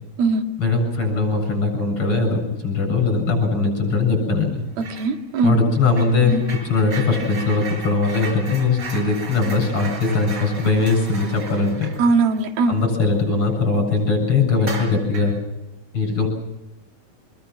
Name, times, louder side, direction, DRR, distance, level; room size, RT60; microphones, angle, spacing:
voice 1, 0.6-4.6 5.4-6.3 6.6-11.9 12.7-15.3 15.9-16.3, left 3 dB, 35° left, 5 dB, 8.4 m, -20 dB
sound 1, 4.8-5.1 5.4-13.5 13.9-14.0 14.6-15.4, right 3 dB, 30° right, 5.1 m, -36 dB
voice 2, 4.8-5.6 6.2-6.4 12.0-12.8, right 4 dB, 85° right, 4 dB, 3.9 m, -20 dB
27.0 x 22.5 x 6.2 m, 0.98 s
omnidirectional pair, 4.2 m